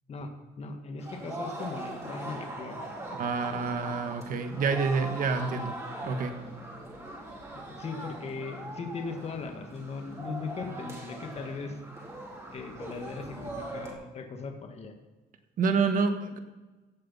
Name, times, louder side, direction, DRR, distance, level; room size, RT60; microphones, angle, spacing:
voice 1, 0.6-2.8 3.4-4.1 7.5-11.8 12.5-14.9, left 4 dB, 40° left, 5 dB, 1.6 m, -39 dB
sound 1, 1.0-13.9, right 1 dB, 15° right, 3.9 m, -41 dB
voice 2, 3.1-5.8 6.0-6.3 15.6-16.4, right 4 dB, 55° right, 7 dB, 1.6 m, -28 dB
16.0 x 7.8 x 5.7 m, 1.2 s
cardioid pair, 110°, 17 cm